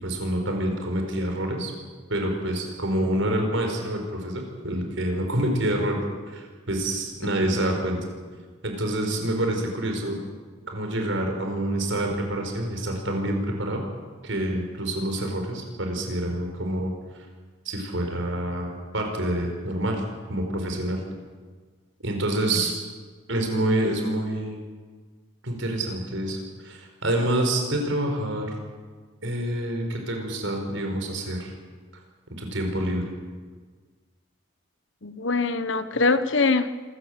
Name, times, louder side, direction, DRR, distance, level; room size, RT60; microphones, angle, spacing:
voice 1, 0.0-1.7 2.1-6.0 6.3-8.0 8.6-10.2 10.7-13.8 14.2-16.9 17.6-20.0 20.3-21.0 22.0-22.7 23.3-24.6 25.4-28.5 29.2-31.5 32.4-33.1, right 1 dB, 70° right, 3 dB, 4.8 m, -27 dB
voice 2, 35.0-36.9, left 3 dB, 65° left, 12 dB, 1.1 m, -23 dB
26.5 x 14.5 x 7.7 m, 1.5 s
head